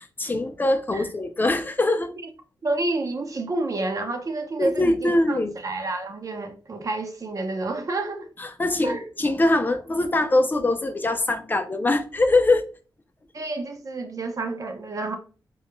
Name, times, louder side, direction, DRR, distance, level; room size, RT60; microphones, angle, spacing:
voice 1, 0.2-2.1 4.6-5.6 8.4-12.7, left 2 dB, 25° left, 0.4 m, -22 dB
voice 2, 2.6-8.3 8.8-9.0 13.3-15.2, right 2 dB, 45° right, 0.5 m, -29 dB
2.3 x 2.0 x 3.0 m
wide cardioid pair, 90°, 8 cm